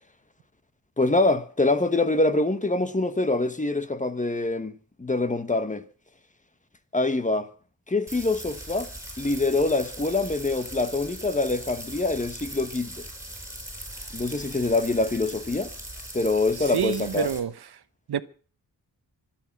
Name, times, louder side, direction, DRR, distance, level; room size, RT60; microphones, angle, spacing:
voice 1, 1.0-4.7 5.0-5.8 6.9-7.5 7.9-8.9 9.2-13.1 14.1-15.7 16.1-17.4, left 2 dB, 20° left, 1.4 m, -25 dB
sound 1, 8.1-17.4, right 1 dB, 10° right, 5.6 m, -40 dB
voice 2, 16.6-17.5 18.1-18.2, right 9 dB, 80° right, 1.0 m, -27 dB
25.0 x 8.9 x 6.1 m
wide cardioid pair, 125°, 38 cm